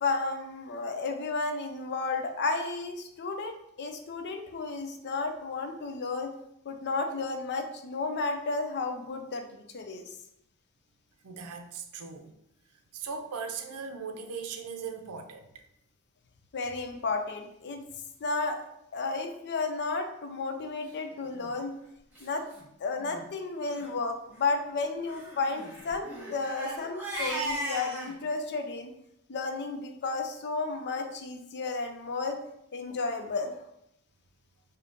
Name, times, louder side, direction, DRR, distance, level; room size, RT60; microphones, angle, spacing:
voice 1, 0.0-6.3 6.7-10.1 16.5-17.8 18.2-18.6 18.9-21.8 22.2-22.4 22.8-28.9 29.3-32.4 32.7-33.6, left 3 dB, 50° left, 5 dB, 0.5 m, -32 dB
voice 2, 11.2-12.3 12.9-15.5, right 5 dB, 85° right, 6 dB, 0.5 m, -39 dB
Crying sobbing, 21.2-21.5 22.2-22.3 22.5-22.6 23.0-23.2 23.6-23.9 25.0-28.1, right 1 dB, 10° right, 1.5 m, -37 dB
3.5 x 2.8 x 3.8 m, 0.78 s
head